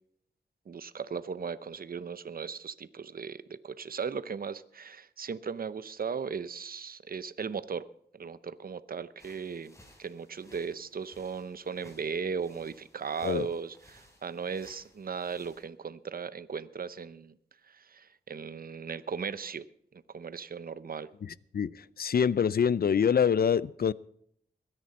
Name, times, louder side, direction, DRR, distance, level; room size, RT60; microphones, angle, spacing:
voice 1, 0.7-7.9 8.1-17.3 17.7-19.7 20.1-21.1, right 6 dB, 55° right, 0.8 m, -37 dB
sound 1, 9.2-15.6, left 1 dB, 15° left, 4.6 m, -60 dB
voice 2, 21.5-23.9, left 7 dB, 60° left, 0.5 m, -25 dB
22.0 x 10.5 x 4.2 m
cardioid pair, 55°, 18 cm